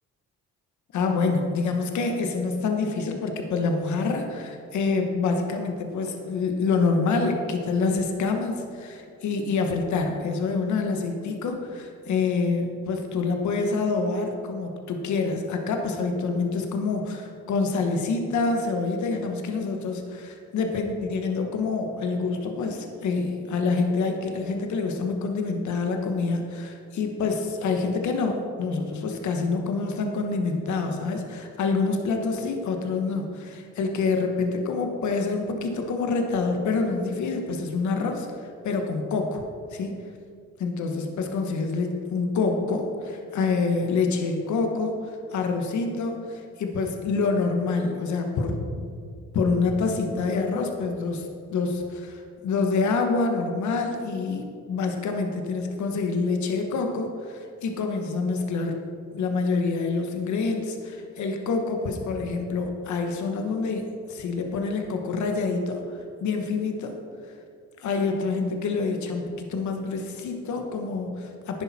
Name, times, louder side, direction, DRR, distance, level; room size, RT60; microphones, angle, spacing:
voice 1, 0.9-39.4 39.7-40.0 40.6-48.8 49.3-58.8 59.1-67.0 67.8-71.6, left 4 dB, 75° left, 4 dB, 1.3 m, -27 dB
10.5 x 10.5 x 4.3 m, 2.3 s
cardioid pair, 90°, 29 cm